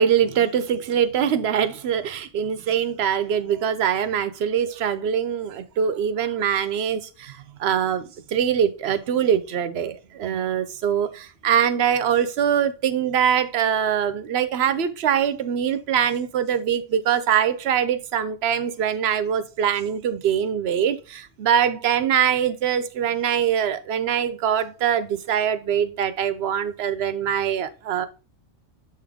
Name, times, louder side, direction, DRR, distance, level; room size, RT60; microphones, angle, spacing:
voice 1, 0.0-28.1, right 8 dB, 65° right, 0.9 m, -23 dB
7.0 x 3.8 x 3.5 m
omnidirectional pair, 1.3 m